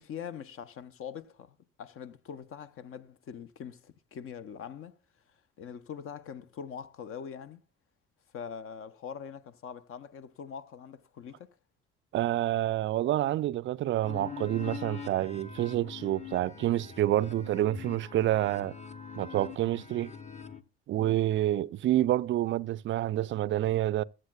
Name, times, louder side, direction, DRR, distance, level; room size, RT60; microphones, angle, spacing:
voice 1, 0.0-5.0 5.6-7.6 8.3-11.6 20.9-21.2, left 7 dB, 45° left, 0.8 m, -43 dB
voice 2, 12.1-18.7 19.2-20.1 20.9-24.0, right 13 dB, 40° right, 0.5 m, -28 dB
sound 1, 14.0-20.6, left 6 dB, 25° left, 1.1 m, -43 dB
22.0 x 7.7 x 2.3 m
figure-of-eight pair, 50°, 30 cm